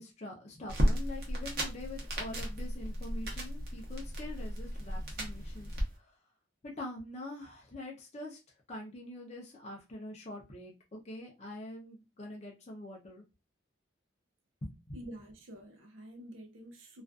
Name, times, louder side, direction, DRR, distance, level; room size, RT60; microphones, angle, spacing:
voice 1, 0.0-5.7 6.6-8.4 8.7-13.2 14.6-15.0, left 1 dB, 35° left, 0.5 m, -44 dB
sound 1, 0.7-5.8, equal, 50° right, 0.7 m, -34 dB
voice 2, 14.9-17.0, right 1 dB, 85° right, 0.5 m, -48 dB
2.4 x 2.3 x 2.3 m
head